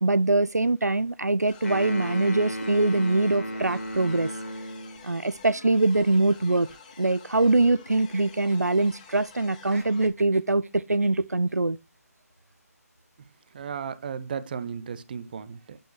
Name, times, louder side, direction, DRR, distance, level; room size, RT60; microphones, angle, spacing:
voice 1, 0.0-4.3 5.0-6.7 7.0-11.8, right 2 dB, 90° right, 0.4 m, -23 dB
sound 1, 1.4-10.1, left 5 dB, 30° left, 1.7 m, -50 dB
sound 2, 1.6-5.0, equal, 60° left, 2.2 m, -34 dB
sound 3, 5.7-7.6 7.9-9.3 9.6-11.5, right 3 dB, 65° right, 1.2 m, -51 dB
voice 2, 13.5-15.8, right 7 dB, 35° right, 0.7 m, -35 dB
8.9 x 7.3 x 3.1 m
figure-of-eight pair, 145°, 9 cm